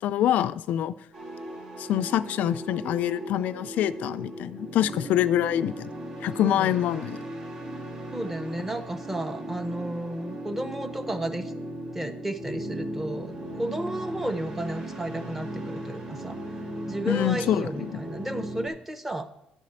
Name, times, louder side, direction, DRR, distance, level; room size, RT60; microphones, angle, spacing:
voice 1, 0.0-1.0 1.8-5.9 6.2-7.2 17.0-18.0, left 11 dB, 80° left, 14 dB, 0.4 m, -25 dB
sound 1, 1.1-18.7, right 1 dB, 35° right, 2.8 m, -37 dB
voice 2, 6.4-6.8 8.1-11.5 11.9-16.4 16.9-19.3, right 1 dB, 10° right, 10 dB, 0.6 m, -33 dB
11.0 x 4.2 x 7.9 m, 0.84 s
cardioid pair, 180°, 3 cm